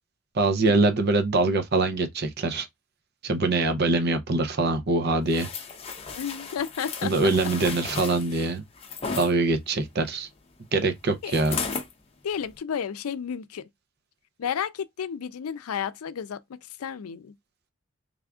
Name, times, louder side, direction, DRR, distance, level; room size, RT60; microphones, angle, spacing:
voice 1, 0.3-2.7 3.2-5.5 7.0-8.6 9.2-10.3 10.7-11.6, right 3 dB, 50° right, 0.6 m, -23 dB
sound 1, 5.3-9.3 11.3-11.9 12.4-12.6, left 5 dB, 25° left, 0.6 m, -35 dB
voice 2, 6.1-7.1 11.2-11.3 12.2-13.6 14.4-16.4 16.8-17.3, left 8 dB, 90° left, 0.4 m, -32 dB
3.4 x 2.4 x 3.4 m
head